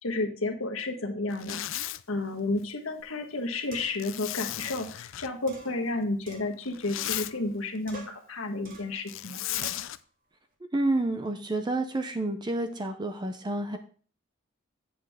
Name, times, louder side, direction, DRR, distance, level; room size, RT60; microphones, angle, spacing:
voice 1, 0.0-9.5, left 2 dB, 80° left, 3 dB, 1.5 m, -32 dB
Zipper (clothing), 1.3-2.0 4.0-5.3 6.6-7.3 9.1-10.0, left 15 dB, 65° left, 0.4 m, -35 dB
sound 1, 3.0-3.1 3.7-4.1 4.6-4.8 5.5-6.7 7.0-7.6 7.9-8.3 8.6-9.0 9.6-9.9, right 1 dB, 45° right, 2.0 m, -47 dB
voice 2, 10.7-13.8, right 2 dB, 20° right, 7 dB, 0.5 m, -29 dB
7.8 x 7.6 x 3.5 m, 0.43 s
head